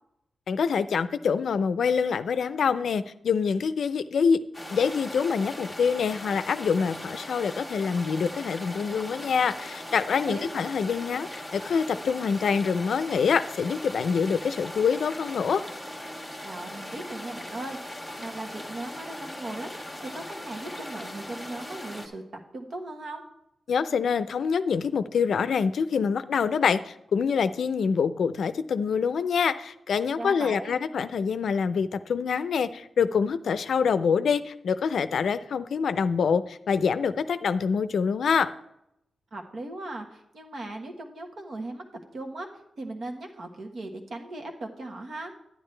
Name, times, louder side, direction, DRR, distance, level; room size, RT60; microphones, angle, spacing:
voice 1, 0.5-4.4 4.7-15.6 23.7-38.5, left 6 dB, 75° left, 12 dB, 0.5 m, -25 dB
sound 1, 4.5-22.1, left 1 dB, 5° right, 1.4 m, -39 dB
voice 2, 16.4-22.2 22.5-23.2 30.2-30.8 39.3-42.5 42.8-45.3, right 2 dB, 55° right, 3 dB, 1.4 m, -38 dB
10.0 x 10.0 x 3.3 m, 0.79 s
wide cardioid pair, 145°, 0 cm